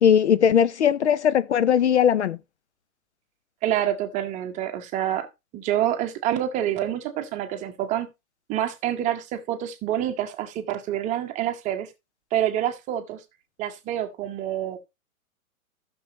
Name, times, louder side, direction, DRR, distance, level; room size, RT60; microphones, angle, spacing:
voice 1, 0.0-2.4, left 8 dB, 50° left, 0.6 m, -19 dB
voice 2, 3.6-5.3 5.5-8.1 8.5-11.9 12.3-13.2 13.6-14.8, right 11 dB, 15° right, 0.9 m, -27 dB
14.5 x 6.2 x 2.9 m
figure-of-eight pair, 125°, 43 cm